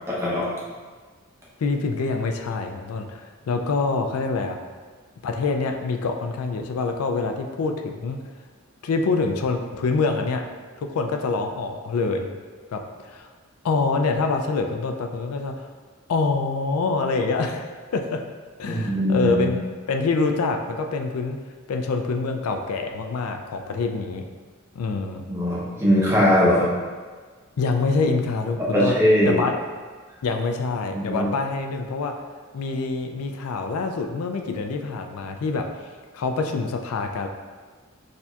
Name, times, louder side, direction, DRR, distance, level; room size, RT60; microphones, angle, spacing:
voice 1, 0.1-0.5 18.6-19.5 25.3-26.7 28.7-29.4 30.9-31.3, equal, 10° right, -7 dB, 0.9 m, -20 dB
voice 2, 1.6-4.6 5.2-8.2 8.8-10.4 10.8-12.3 12.7-13.3 13.6-15.7 16.1-18.2 18.6-19.6 19.9-21.4 21.7-24.2 24.8-25.2 27.6-29.0 29.3-29.5 30.2-32.1 32.5-35.7 36.1-37.3, left 4 dB, 85° left, 4 dB, 0.4 m, -25 dB
6.4 x 2.8 x 2.3 m, 1.5 s
head